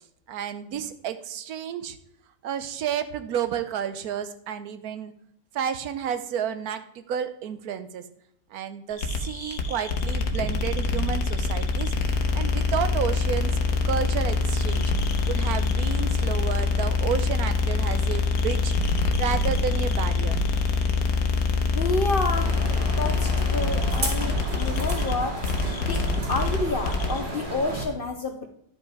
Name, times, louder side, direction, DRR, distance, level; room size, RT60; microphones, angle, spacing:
voice 1, 0.3-2.0 2.4-5.1 5.5-8.0 8.5-11.9 12.3-13.5 13.8-14.9 15.3-18.7 19.2-20.4, right 8 dB, 70° right, 11 dB, 1.1 m, -31 dB
sound 1, 9.0-27.2, left 4 dB, 70° left, 1.5 m, -25 dB
voice 2, 21.7-22.6 22.9-25.4 25.8-28.5, left 3 dB, 55° left, 6 dB, 0.6 m, -29 dB
sound 2, 22.3-27.8, right 2 dB, 30° right, 1.9 m, -33 dB
11.0 x 5.4 x 4.8 m, 0.69 s
omnidirectional pair, 1.8 m